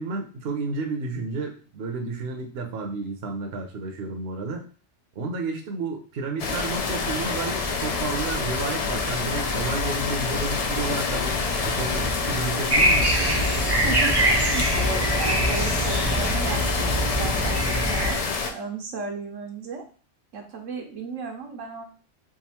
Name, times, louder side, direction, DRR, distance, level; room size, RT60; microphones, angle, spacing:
voice 1, 0.0-4.7 5.1-13.1, right 3 dB, 60° right, 3 dB, 0.9 m, -31 dB
sound 1, 6.4-18.5, left 4 dB, 60° left, 0.4 m, -27 dB
sound 2, 12.7-18.1, right 1 dB, 30° right, 0.5 m, -23 dB
voice 2, 13.8-19.8 20.3-21.8, right 4 dB, 85° right, 2 dB, 1.2 m, -34 dB
3.6 x 2.5 x 4.2 m, 0.38 s
omnidirectional pair, 1.3 m